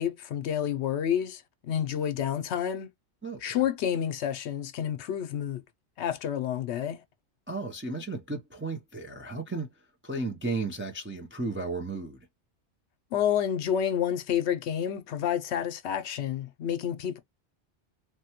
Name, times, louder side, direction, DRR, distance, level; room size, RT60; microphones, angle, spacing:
voice 1, 0.0-1.4 1.7-2.9 3.4-5.6 6.0-7.0 13.1-17.2, left 9 dB, 75° left, 0.8 m, -29 dB
voice 2, 3.2-3.6 7.5-9.7 10.0-12.2, right 3 dB, 20° right, 0.3 m, -34 dB
3.2 x 2.1 x 2.8 m
omnidirectional pair, 1.2 m